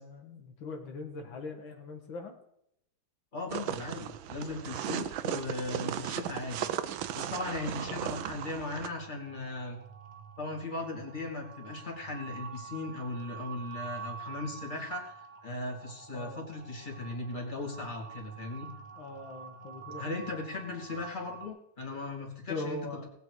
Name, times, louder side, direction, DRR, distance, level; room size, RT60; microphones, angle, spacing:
voice 1, 0.0-2.3 16.1-16.5 19.0-20.1 22.5-23.1, left 3 dB, 90° left, 3 dB, 2.4 m, -41 dB
voice 2, 3.3-6.7 7.1-9.8 10.4-18.7 20.0-22.8, left 2 dB, 25° left, 0 dB, 2.7 m, -38 dB
sound 1, 3.5-8.9, right 11 dB, 85° right, 1.5 m, -36 dB
sound 2, 4.8-21.5, right 6 dB, 25° right, 1.3 m, -48 dB
19.0 x 8.1 x 4.9 m, 0.78 s
omnidirectional pair, 2.1 m